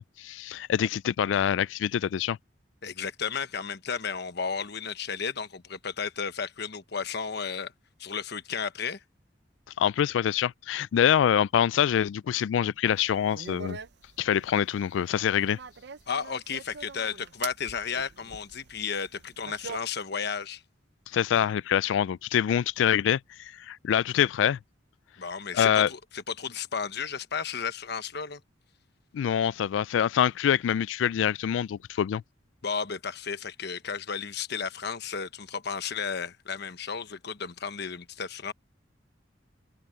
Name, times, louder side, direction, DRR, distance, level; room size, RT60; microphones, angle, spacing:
voice 1, 0.0-2.4 9.8-13.8 14.2-15.6 21.1-24.6 25.5-25.9 29.1-32.2, left 9 dB, 80° left, 0.3 m, -25 dB
voice 2, 2.8-7.7 8.0-9.0 16.1-20.6 25.2-28.4 32.6-38.5, left 6 dB, 60° left, 1.1 m, -33 dB
sound 1, 12.9-19.8, right 5 dB, 65° right, 0.7 m, -44 dB
open air
head